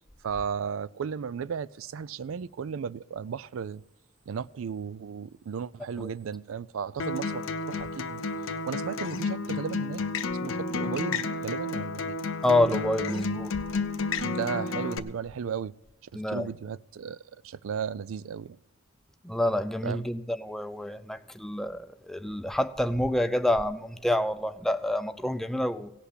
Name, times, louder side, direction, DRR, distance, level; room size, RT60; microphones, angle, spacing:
voice 1, 0.2-3.8 4.3-8.3 8.7-10.0 10.3-12.2 14.2-15.7 16.1-18.6 19.8-20.0, right 6 dB, 85° right, 0.4 m, -35 dB
Acoustic guitar, 7.0-15.0, left 3 dB, 80° left, 0.7 m, -31 dB
voice 2, 12.4-13.5 16.1-16.5 19.2-25.9, left 1 dB, ahead, 0.4 m, -28 dB
17.0 x 5.8 x 8.2 m
head